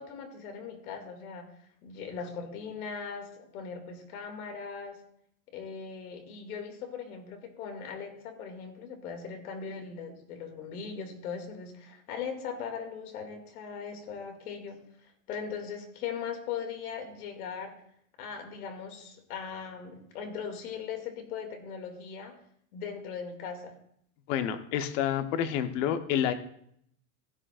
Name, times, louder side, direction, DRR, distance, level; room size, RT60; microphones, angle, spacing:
voice 1, 0.0-1.5 1.8-5.0 5.5-17.8 18.2-22.4 22.7-23.8, left 6 dB, 85° left, 4 dB, 2.5 m, -39 dB
voice 2, 24.3-26.3, left 9 dB, 60° left, 9 dB, 1.1 m, -28 dB
16.0 x 10.0 x 2.5 m, 0.68 s
supercardioid pair, 155°, 43 cm